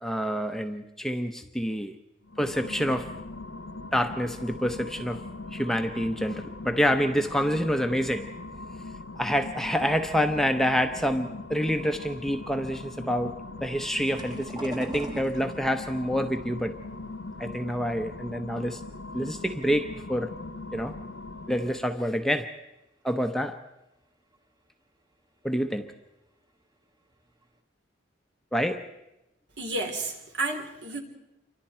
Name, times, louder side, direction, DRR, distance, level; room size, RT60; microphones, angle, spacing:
voice 1, 0.0-2.0 2.4-3.2 3.9-5.2 5.5-8.3 9.2-16.7 17.4-18.8 19.1-20.3 20.7-21.0 21.5-22.6 23.0-23.7 25.4-25.9 28.5-28.9, equal, ahead, 0.8 m, -27 dB
sound 1, 2.2-22.0, left 2 dB, 85° left, 1.1 m, -40 dB
sound 2, 14.0-19.1 19.5-20.3 20.8-21.2 21.4-21.5 22.7-22.8 23.4-23.5 24.0-24.1 24.3-24.7 25.9-26.1 26.6-26.7 27.1-27.6, right 1 dB, 20° right, 1.4 m, -42 dB
voice 2, 29.6-31.0, right 2 dB, 65° right, 3.9 m, -31 dB
29.0 x 25.0 x 4.5 m
head